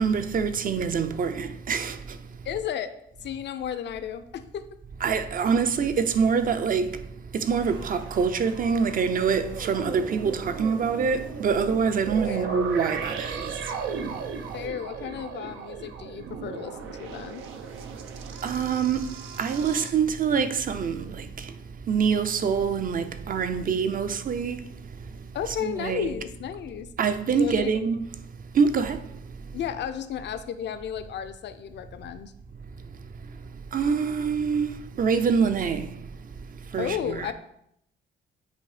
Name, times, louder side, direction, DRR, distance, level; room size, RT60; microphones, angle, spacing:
voice 1, 0.0-2.2 5.0-7.1 7.3-14.0 14.4-14.5 18.4-25.3 25.6-26.1 27.0-28.0 28.5-29.4 33.2-33.3 33.7-36.1 36.5-37.3, right 6 dB, 45° right, 0.6 m, -26 dB
voice 2, 2.4-2.9 3.2-4.7 12.3-12.6 14.5-17.4 25.3-26.9 27.3-27.9 29.5-32.3 36.8-37.3, left 9 dB, 60° left, 0.6 m, -33 dB
sound 1, 7.6-19.9, right 5 dB, 85° right, 0.7 m, -37 dB
8.2 x 2.7 x 4.9 m
cardioid pair, 90°, 20 cm